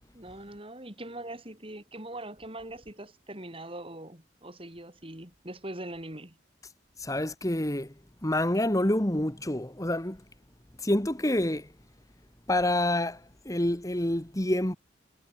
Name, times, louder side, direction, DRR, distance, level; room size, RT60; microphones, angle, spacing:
voice 1, 0.1-6.4, right 1 dB, 30° right, 4.4 m, -42 dB
voice 2, 7.0-7.9 8.2-10.2 10.8-11.7 12.5-14.8, left 1 dB, 20° left, 1.7 m, -27 dB
head